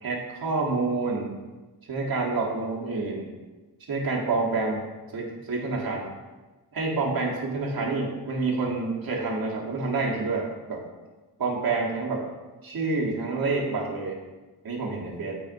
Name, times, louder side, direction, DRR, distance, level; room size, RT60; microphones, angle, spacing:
voice 1, 0.0-1.3 1.9-3.3 3.9-4.8 5.1-6.1 6.7-10.8 11.4-12.2 12.6-14.2 14.6-15.4, right 3 dB, 60° right, -3 dB, 1.2 m, -28 dB
8.8 x 4.2 x 2.6 m, 1.2 s
wide cardioid pair, 105°, 40 cm